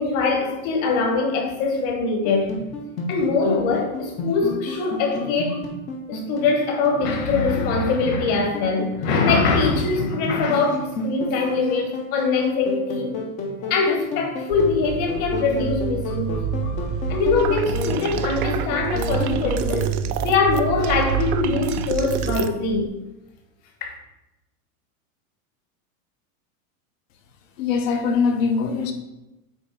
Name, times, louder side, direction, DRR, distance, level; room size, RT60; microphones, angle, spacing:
voice 1, 0.0-2.5 3.1-5.6 6.1-13.1 13.6-16.4 17.1-19.9 20.2-22.9 23.8-24.0, left 4 dB, 40° left, 2 dB, 1.5 m, -22 dB
sound 1, 2.2-19.8, left 2 dB, 15° left, 0.6 m, -32 dB
sound 2, 14.5-22.9, right 7 dB, 35° right, 0.8 m, -28 dB
sound 3, 17.4-22.5, right 11 dB, 80° right, 0.7 m, -32 dB
voice 2, 27.6-28.9, left 5 dB, 65° left, 6 dB, 1.2 m, -22 dB
8.1 x 3.1 x 5.4 m, 0.95 s
supercardioid pair, 170°, 43 cm